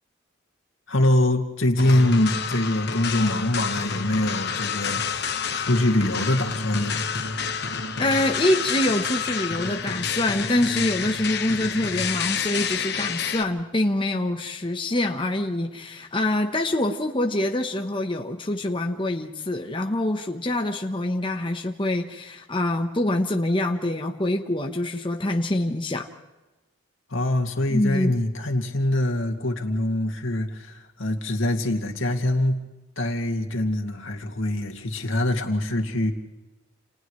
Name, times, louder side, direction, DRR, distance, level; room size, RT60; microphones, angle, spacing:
voice 1, 0.9-7.1 27.1-32.6 33.0-36.1, left 1 dB, 80° left, 3 dB, 2.4 m, -24 dB
sound 1, 1.8-13.4, left 6 dB, 55° left, 1.3 m, -28 dB
voice 2, 8.0-26.1 27.7-28.1, left 1 dB, 25° left, 4 dB, 1.0 m, -25 dB
29.5 x 29.5 x 3.2 m, 1.1 s
head